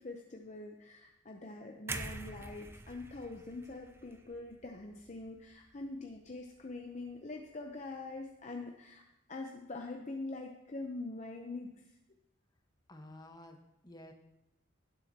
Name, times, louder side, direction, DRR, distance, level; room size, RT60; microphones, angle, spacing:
voice 1, 0.0-11.7, left 2 dB, 35° left, 2 dB, 0.7 m, -44 dB
sound 1, 1.9-5.9 6.3-6.5, right 2 dB, 10° right, 0.4 m, -46 dB
voice 2, 12.9-14.1, left 1 dB, 20° left, 3 dB, 1.1 m, -52 dB
17.0 x 7.7 x 2.8 m, 0.87 s
head